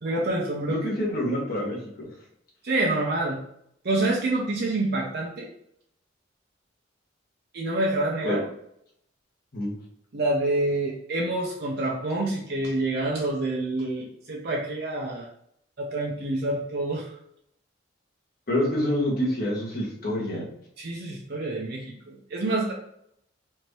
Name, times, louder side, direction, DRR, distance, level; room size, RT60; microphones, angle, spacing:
voice 1, 0.0-0.8 2.6-3.4 3.8-5.5 7.5-8.4 10.1-15.3 15.8-17.1 20.8-22.7, right 2 dB, 55° right, -2 dB, 0.7 m, -27 dB
voice 2, 0.7-2.1 8.2-8.4 9.5-9.7 18.5-20.5, left 1 dB, 50° left, -4 dB, 1.5 m, -27 dB
4.5 x 2.8 x 3.1 m, 0.73 s
head